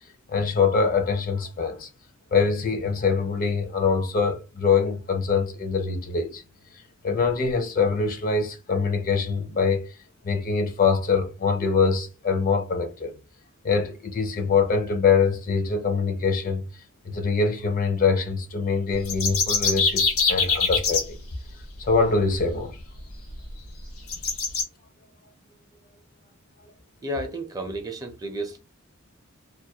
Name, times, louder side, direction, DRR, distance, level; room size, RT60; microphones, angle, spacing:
voice 1, 0.3-1.9 2.3-6.4 7.0-9.9 10.2-13.1 13.6-16.6 17.1-21.2 21.8-22.8, left 5 dB, 40° left, 0.4 m, -24 dB
sound 1, 18.9-21.0 22.8-22.9 23.3-23.4 24.1-24.6, left 4 dB, 80° left, 0.9 m, -23 dB
voice 2, 27.0-28.6, right 1 dB, 15° right, 0.4 m, -32 dB
2.3 x 2.2 x 2.7 m
head